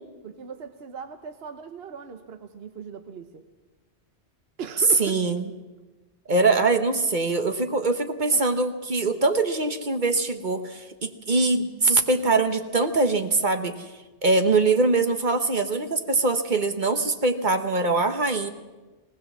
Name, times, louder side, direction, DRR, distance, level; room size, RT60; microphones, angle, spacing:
voice 1, 0.2-3.4 4.6-5.2 5.4-5.6 8.3-8.5, right 6 dB, 65° right, 8 dB, 1.2 m, -38 dB
voice 2, 5.0-5.5 6.3-13.9 14.2-18.5, right 3 dB, 45° right, 8 dB, 1.2 m, -23 dB
19.5 x 18.5 x 7.2 m, 1.2 s
omnidirectional pair, 1.1 m